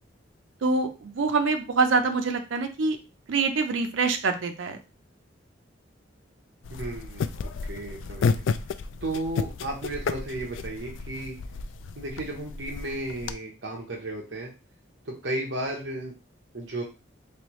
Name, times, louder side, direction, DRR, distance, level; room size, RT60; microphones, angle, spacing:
voice 1, 0.6-3.0 3.3-4.8, right 4 dB, 85° right, 6 dB, 0.5 m, -25 dB
sound 1, 6.6-13.3, left 5 dB, 85° left, 0.3 m, -32 dB
voice 2, 6.7-7.2 7.6-8.4 9.0-11.4 12.0-14.5 15.1-16.1 16.5-16.8, right 1 dB, 65° right, 0 dB, 0.9 m, -34 dB
3.4 x 3.2 x 3.0 m, 0.30 s
head